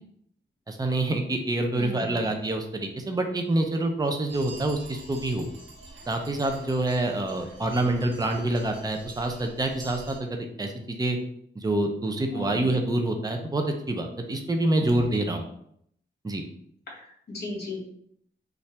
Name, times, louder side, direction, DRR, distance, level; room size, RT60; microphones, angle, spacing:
voice 1, 0.7-5.5 6.1-11.2 11.6-15.4 16.2-16.4, right 2 dB, 20° right, 4 dB, 0.6 m, -27 dB
voice 2, 1.7-2.3 12.3-12.6 14.8-14.9 16.9-17.8, left 1 dB, 55° left, -3 dB, 1.8 m, -36 dB
sound 1, 4.3-10.2, right 2 dB, 70° right, 1.2 m, -46 dB
5.5 x 2.6 x 3.4 m, 0.69 s
wide cardioid pair, 110°, 20 cm